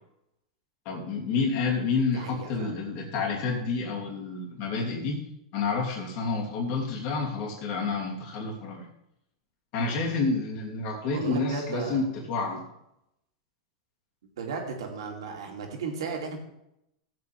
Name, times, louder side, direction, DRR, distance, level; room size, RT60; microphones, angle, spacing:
voice 1, 0.8-5.2 5.5-8.9 9.7-12.6, left 4 dB, 55° left, -2 dB, 2.9 m, -29 dB
voice 2, 2.1-2.7 11.1-12.0 14.2-16.4, right 5 dB, 80° right, 1 dB, 2.6 m, -35 dB
15.5 x 7.8 x 3.5 m, 0.82 s
hypercardioid pair, 115°, 3 cm